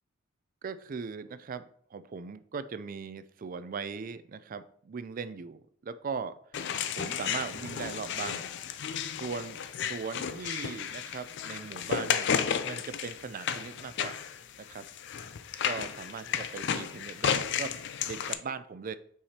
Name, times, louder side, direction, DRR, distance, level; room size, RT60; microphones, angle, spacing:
voice 1, 0.6-6.4 6.9-8.5 9.2-12.3 12.6-14.3 14.6-14.8 15.6-17.7 18.1-19.0, right 5 dB, 40° right, 13 dB, 0.3 m, -39 dB
sound 1, 6.5-18.3, left 8 dB, 55° left, 0.4 m, -33 dB
8.5 x 4.8 x 2.9 m, 0.64 s
head